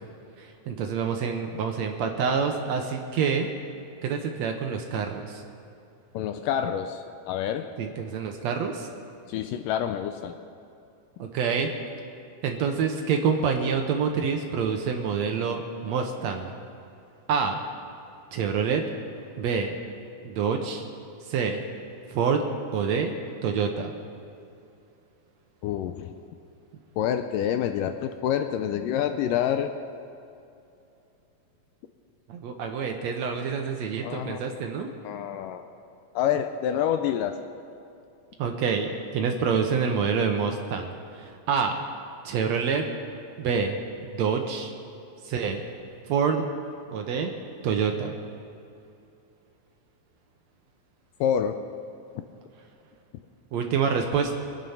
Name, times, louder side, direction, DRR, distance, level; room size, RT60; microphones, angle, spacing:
voice 1, 0.4-3.5 4.0-5.4 7.8-8.9 11.2-11.7 12.4-16.5 17.3-17.6 18.3-18.8 19.4-19.8 20.2-20.8 21.3-21.6 22.1-22.4 22.7-23.1 23.4-23.9 32.3-34.9 38.4-41.8 42.2-42.9 43.4-43.8 44.0-44.7 45.2-45.6 46.1-46.4 46.9-47.3 47.6-48.2 53.5-54.3, right 6 dB, 75° right, 3 dB, 1.6 m, -27 dB
voice 2, 6.1-7.7 9.3-10.4 25.6-26.1 27.0-29.7 34.0-34.5 35.0-35.7 36.2-37.4 51.2-51.6, left 9 dB, 80° left, 8 dB, 2.0 m, -27 dB
22.5 x 9.1 x 5.7 m, 2.7 s
omnidirectional pair, 4.2 m